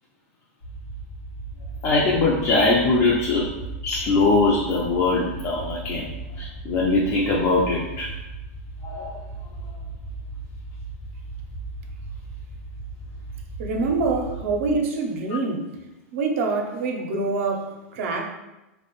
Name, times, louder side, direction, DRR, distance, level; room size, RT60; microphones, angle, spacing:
sound 1, 0.6-14.8, right 3 dB, 85° left, 0.7 m, -37 dB
voice 1, 1.8-3.5 3.8-6.1 6.4-8.1 8.8-9.1, left 3 dB, 35° left, -4 dB, 0.4 m, -21 dB
voice 2, 13.6-15.7 16.1-18.2, right 3 dB, 65° right, 2 dB, 0.5 m, -25 dB
2.4 x 2.0 x 2.9 m, 1.0 s
hypercardioid pair, 130°, 8 cm